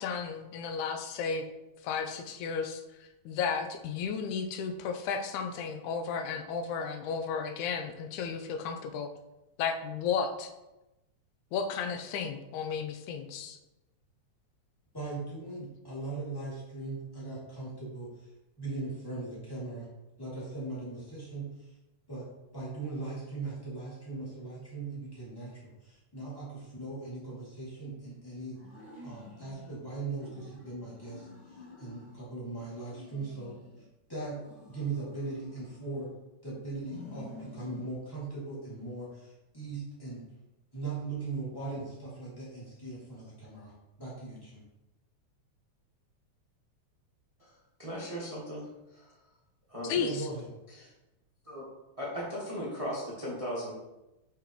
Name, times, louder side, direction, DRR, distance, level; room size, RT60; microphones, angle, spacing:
voice 1, 0.0-1.5 1.8-2.8 3.3-9.1 9.6-10.5 11.5-13.6 49.8-50.2, left 6 dB, 85° left, 6 dB, 2.1 m, -33 dB
voice 2, 14.9-18.3 18.6-19.9 20.2-21.7 22.1-22.3 22.5-28.6 29.0-33.5 34.1-34.4 34.7-36.1 36.4-40.2 40.7-43.7 44.0-44.6 49.9-50.5, right 3 dB, 10° left, -7 dB, 1.9 m, -39 dB
sound 1, 28.5-29.8 30.2-32.3 32.6-33.9 34.3-36.2 36.7-37.9, left 3 dB, 30° left, 1.3 m, -50 dB
voice 3, 47.8-48.6 48.9-49.1 49.7-49.9 50.7-50.9 51.4-51.7 52.0-53.7, equal, 25° right, -6 dB, 0.8 m, -37 dB
6.1 x 5.9 x 3.1 m, 0.97 s
omnidirectional pair, 3.3 m